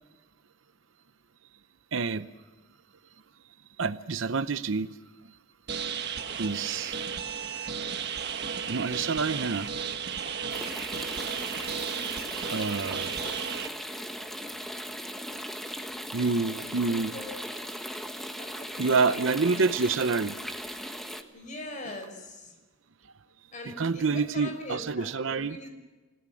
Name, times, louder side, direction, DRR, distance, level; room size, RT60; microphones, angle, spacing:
voice 1, 1.9-2.3 3.8-4.9 6.4-6.9 8.7-9.7 12.5-13.1 16.1-17.2 18.8-20.4 23.8-25.6, right 4 dB, 80° right, 13 dB, 0.7 m, -27 dB
sound 1, 5.7-13.7, right 7 dB, 55° right, 1.4 m, -34 dB
sound 2, 10.5-21.2, equal, ahead, 1.3 m, -38 dB
voice 2, 11.8-12.2 16.9-17.3 18.4-18.7 19.0-19.6 21.3-22.6 23.5-25.7, left 2 dB, 40° left, 4 dB, 6.0 m, -42 dB
29.0 x 17.5 x 6.3 m, 1.2 s
head